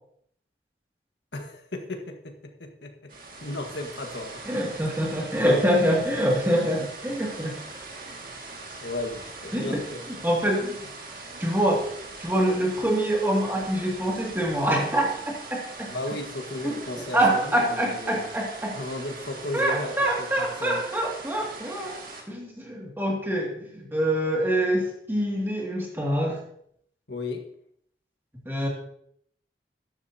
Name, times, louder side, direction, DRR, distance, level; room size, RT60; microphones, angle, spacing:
voice 1, 1.3-3.1 3.4-4.4 8.8-10.0 15.8-18.3 18.7-20.8 27.1-27.5, left 2 dB, 85° left, 3 dB, 1.6 m, -35 dB
sound 1, 3.1-22.2, right 3 dB, 50° right, 2.0 m, -41 dB
voice 2, 4.5-7.6 9.5-9.8 10.2-10.9 11.4-11.8 12.2-15.9 16.6-16.8 17.1-18.8 19.5-22.0 22.3-26.4 28.4-28.7, right 1 dB, 10° right, -2 dB, 2.3 m, -25 dB
13.5 x 10.5 x 2.8 m, 0.68 s
head